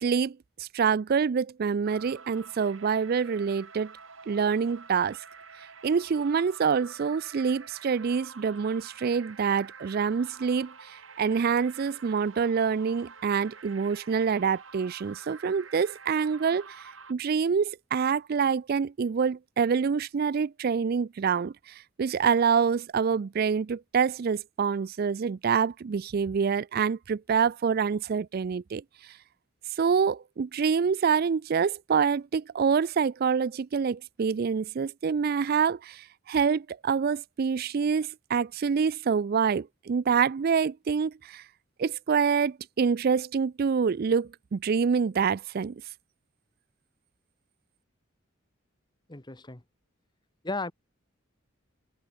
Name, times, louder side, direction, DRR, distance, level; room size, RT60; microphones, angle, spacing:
voice 1, 0.0-3.9 4.3-5.2 5.8-10.7 11.2-16.8 17.1-21.5 22.0-28.8 29.8-41.4 41.8-45.8, right 6 dB, 50° right, 0.4 m, -26 dB
sound 1, 1.8-17.1, right 5 dB, 75° right, 5.5 m, -48 dB
voice 2, 49.1-49.6 50.4-50.7, left 2 dB, 20° left, 1.2 m, -34 dB
head